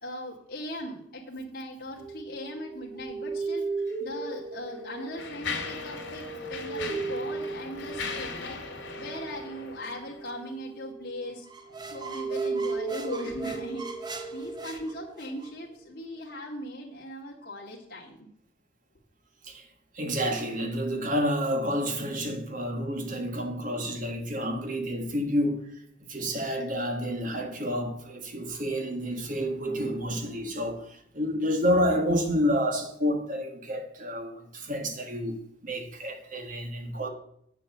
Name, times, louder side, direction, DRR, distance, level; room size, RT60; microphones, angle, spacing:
voice 1, 0.0-3.6 4.0-8.6 9.0-11.5 11.8-18.3, equal, 50° left, 2.1 m, -39 dB
sound 1, 2.0-11.3 11.7-15.4, right 3 dB, 65° right, 4.1 m, -36 dB
Mechanisms, 3.8-3.9 4.7-10.4, left 4 dB, 70° left, 2.5 m, -38 dB
sound 2, 11.4-15.5, right 4 dB, 20° right, 0.8 m, -42 dB
voice 2, 19.9-25.7 26.1-37.1, equal, 40° right, 1.6 m, -29 dB
8.6 x 7.4 x 7.3 m
head